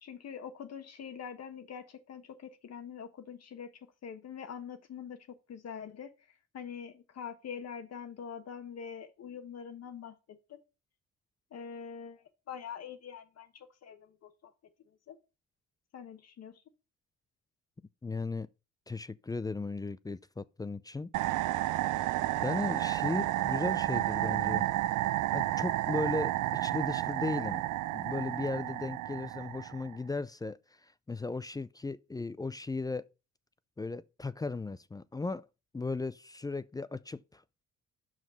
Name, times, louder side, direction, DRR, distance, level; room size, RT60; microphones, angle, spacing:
voice 1, 0.0-10.6 11.5-14.5 15.1-15.2 15.9-16.6, left 7 dB, 55° left, 1.1 m, -44 dB
voice 2, 18.0-18.5 18.9-21.1 22.4-24.7 25.3-27.6 27.9-33.0 33.8-35.5 35.7-37.4, left 3 dB, 15° left, 0.3 m, -36 dB
sound 1, 21.1-30.0, right 15 dB, 80° right, 0.5 m, -31 dB
5.9 x 5.0 x 5.3 m
cardioid pair, 90°, 30 cm